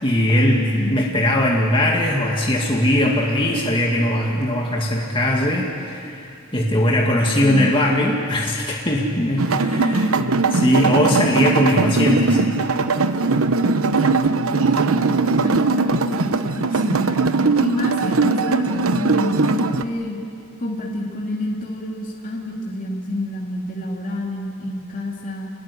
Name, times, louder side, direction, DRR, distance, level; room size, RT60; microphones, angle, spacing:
voice 1, 0.0-6.3 6.5-10.1 10.5-12.4, left 1 dB, 25° left, -2 dB, 2.1 m, -20 dB
sound 1, 9.4-19.8, right 3 dB, 80° right, 1.0 m, -20 dB
voice 2, 9.5-11.6 14.5-17.2 17.6-20.2 20.6-25.5, left 1 dB, 40° left, -2 dB, 2.7 m, -29 dB
27.5 x 21.5 x 10.0 m, 2.5 s
head